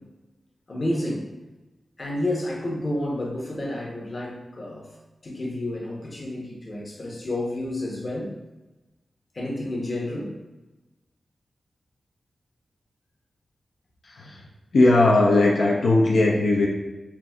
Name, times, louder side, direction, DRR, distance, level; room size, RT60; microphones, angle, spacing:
voice 1, 0.7-1.2 2.0-4.9 5.2-8.3 9.3-10.3, left 1 dB, 35° left, -3 dB, 0.9 m, -30 dB
voice 2, 14.0-14.4 14.7-16.7, left 2 dB, 75° left, -3 dB, 0.6 m, -18 dB
5.7 x 2.5 x 2.3 m, 1.1 s
wide cardioid pair, 135°, 0 cm